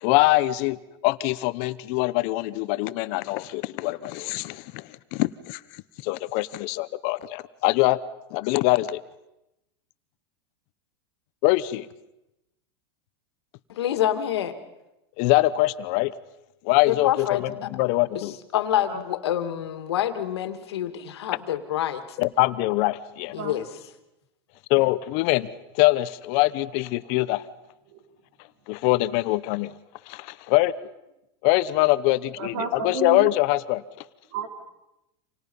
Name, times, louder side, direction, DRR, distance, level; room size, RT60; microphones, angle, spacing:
voice 1, 0.0-5.6 6.0-8.0 8.3-9.0 11.4-11.9 15.2-16.1 16.6-18.4 22.2-23.3 24.7-25.5 25.7-27.4 28.7-29.7 30.1-30.7 31.4-33.8, left 19 dB, 50° left, 15 dB, 0.9 m, -23 dB
voice 2, 13.7-14.5 16.9-17.4 18.5-22.0 23.3-23.8, left 11 dB, 90° left, 9 dB, 2.2 m, -26 dB
voice 3, 32.4-33.3 34.3-34.5, right 5 dB, 65° right, 4 dB, 4.1 m, -30 dB
29.0 x 27.5 x 5.5 m, 0.92 s
supercardioid pair, 140°, 13 cm